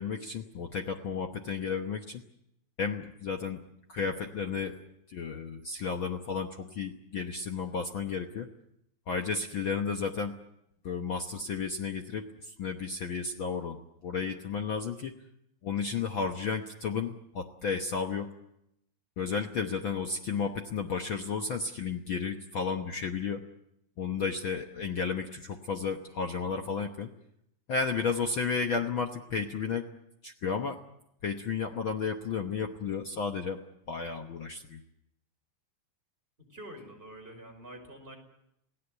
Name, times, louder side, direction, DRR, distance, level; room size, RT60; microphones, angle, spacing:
voice 1, 0.0-2.2 2.8-3.6 3.9-4.7 5.1-8.5 9.1-10.4 10.8-15.1 15.6-18.3 19.2-23.4 24.0-27.1 27.7-29.9 30.2-30.8 31.2-33.6 33.9-34.8, left 5 dB, 80° left, 4 dB, 1.1 m, -33 dB
voice 2, 36.5-38.2, right 1 dB, 15° right, 2 dB, 5.2 m, -46 dB
28.5 x 18.0 x 8.1 m, 0.80 s
omnidirectional pair, 4.1 m